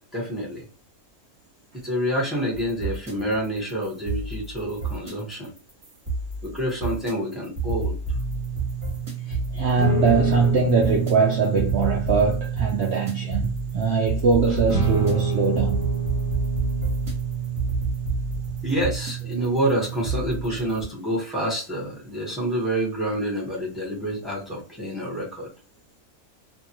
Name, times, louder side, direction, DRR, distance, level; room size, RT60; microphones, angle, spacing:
voice 1, 0.1-0.6 1.7-5.5 6.4-8.0 18.6-25.5, equal, ahead, 0.8 m, -27 dB
sound 1, 2.5-20.8, right 2 dB, 40° right, 1.1 m, -30 dB
sound 2, 8.1-20.7, right 6 dB, 30° left, 0.5 m, -28 dB
voice 2, 9.3-15.9, right 4 dB, 65° right, 0.7 m, -22 dB
2.6 x 2.4 x 2.8 m
omnidirectional pair, 1.6 m